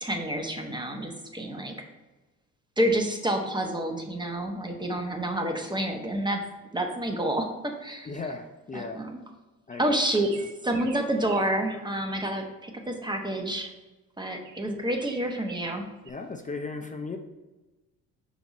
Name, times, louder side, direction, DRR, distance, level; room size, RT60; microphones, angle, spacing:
voice 1, 0.0-1.8 2.8-6.4 6.7-8.1 8.7-9.2 9.8-10.3 10.6-13.7 14.2-15.8, right 1 dB, 10° right, 3 dB, 1.0 m, -29 dB
voice 2, 8.0-9.1 9.7-9.8 16.0-17.2, left 3 dB, 20° left, 5 dB, 0.5 m, -36 dB
sound 1, 9.7-11.6 14.4-16.1, right 6 dB, 45° right, 0.8 m, -46 dB
5.7 x 4.1 x 4.2 m, 1.1 s
hypercardioid pair, 60°, 42 cm